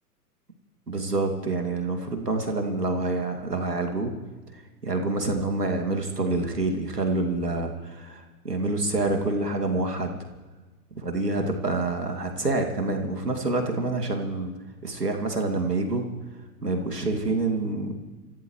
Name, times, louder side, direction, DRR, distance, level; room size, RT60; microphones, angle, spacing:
voice 1, 0.9-4.1 4.5-10.3 11.0-14.5 14.8-16.1 16.6-17.9, right 2 dB, 80° right, 3 dB, 2.6 m, -27 dB
26.0 x 16.5 x 3.2 m, 1.3 s
figure-of-eight pair, 100°, 47 cm